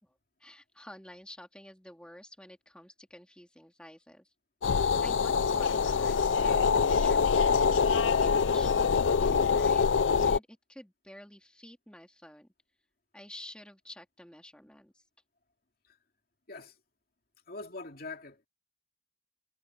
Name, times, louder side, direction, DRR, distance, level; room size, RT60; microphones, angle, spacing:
voice 1, 0.0-4.3 5.0-8.7 9.2-12.5 13.1-15.0, left 1 dB, 5° left, 3.2 m, -50 dB
sound 1, 4.6-10.4, left 5 dB, 85° left, 0.5 m, -25 dB
voice 2, 17.5-18.5, left 3 dB, 50° left, 2.7 m, -43 dB
head